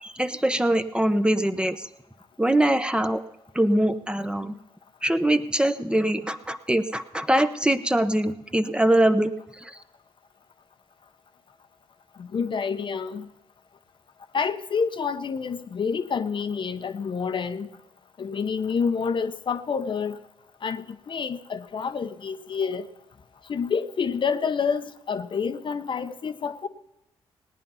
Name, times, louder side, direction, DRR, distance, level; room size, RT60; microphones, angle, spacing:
voice 1, 0.0-1.8 2.4-3.2 3.5-4.5 5.0-9.8, right 1 dB, 10° right, 0.9 m, -23 dB
voice 2, 12.2-13.3 14.3-17.7 18.2-20.2 20.6-22.8 23.5-26.7, left 6 dB, 50° left, 0.8 m, -28 dB
18.0 x 9.4 x 5.6 m
supercardioid pair, 65°, 11 cm